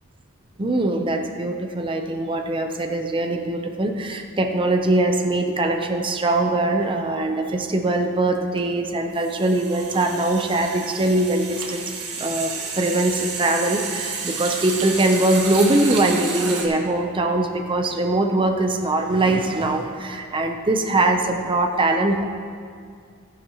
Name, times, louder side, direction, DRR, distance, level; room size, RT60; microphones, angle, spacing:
voice 1, 0.6-11.8 12.2-22.2, right 2 dB, 25° right, 4 dB, 0.6 m, -22 dB
sound 1, 8.0-8.1 8.3-16.7, right 4 dB, 80° right, 1.5 m, -31 dB
14.5 x 11.0 x 2.9 m, 2.2 s
head